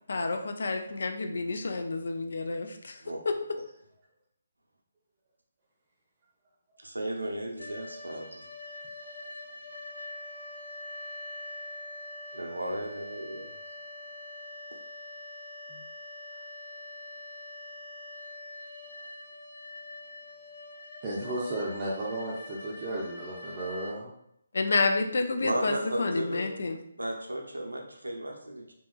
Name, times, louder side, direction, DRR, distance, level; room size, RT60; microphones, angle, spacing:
voice 1, 0.1-2.9 3.3-3.4 24.5-26.8, left 3 dB, 65° left, 6 dB, 0.3 m, -29 dB
voice 2, 6.8-8.5 12.3-13.5 25.4-26.5 27.0-28.7, right 1 dB, 90° right, 1 dB, 0.5 m, -35 dB
sound 1, 7.6-23.9, left 2 dB, 85° left, 0.8 m, -44 dB
voice 3, 21.0-24.1, right 1 dB, 30° right, -5 dB, 0.5 m, -34 dB
2.8 x 2.3 x 2.3 m, 0.74 s
figure-of-eight pair, 145°, 0 cm